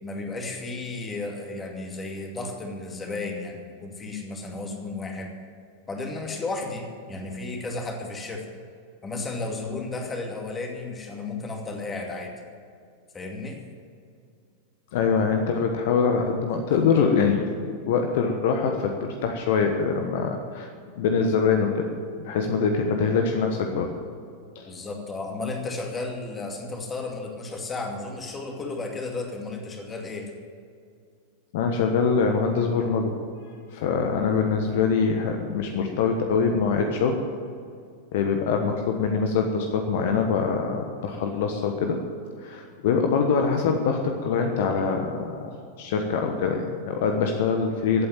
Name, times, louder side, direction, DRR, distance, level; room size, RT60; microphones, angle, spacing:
voice 1, 0.0-5.3 5.9-8.4 9.0-12.3 13.1-13.6 24.7-30.3, left 3 dB, 20° left, 2 dB, 2.4 m, -33 dB
voice 2, 14.9-20.7 21.0-21.9 22.2-23.9 24.5-24.7 31.5-33.2 33.7-37.2 38.1-42.0 42.4-48.1, left 5 dB, 55° left, 4 dB, 1.2 m, -24 dB
15.5 x 8.8 x 7.5 m, 2.3 s
figure-of-eight pair, 90°, 0 cm